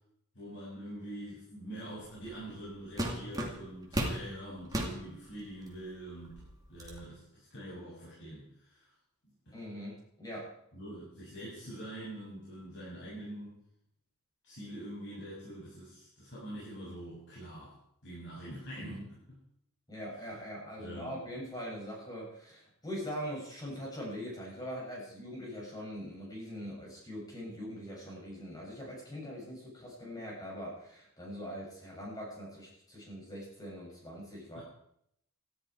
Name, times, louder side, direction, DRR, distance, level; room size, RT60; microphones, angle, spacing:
voice 1, 0.3-6.4 6.7-8.9 9.5-9.6 10.7-13.5 14.4-17.7 18.0-19.4 20.8-21.2 34.5-34.6, right 1 dB, 55° left, -9 dB, 7.5 m, -44 dB
sound 1, 2.3-2.5 3.0-4.2 4.7-5.0 5.7-5.8 6.2-7.0, right 1 dB, 15° right, 2.6 m, -34 dB
voice 2, 9.5-10.5 18.7-19.0 19.9-34.6, equal, 15° left, -3 dB, 7.8 m, -42 dB
18.5 x 14.0 x 4.9 m, 0.73 s
head